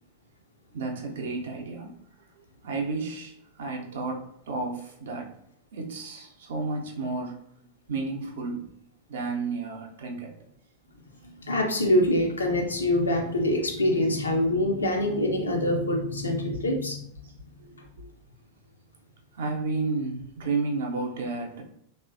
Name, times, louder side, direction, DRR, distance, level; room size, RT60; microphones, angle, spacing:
voice 1, 0.7-1.9 2.4-5.4 5.7-7.4 7.9-8.7 9.1-10.3 16.5-16.6 17.2-17.3 17.6-18.1 19.3-21.6, right 3 dB, 60° right, 0.5 m, -32 dB
voice 2, 11.5-17.0, left 1 dB, 75° left, 0.5 m, -24 dB
3.1 x 2.1 x 2.5 m
figure-of-eight pair, 90°, 0 cm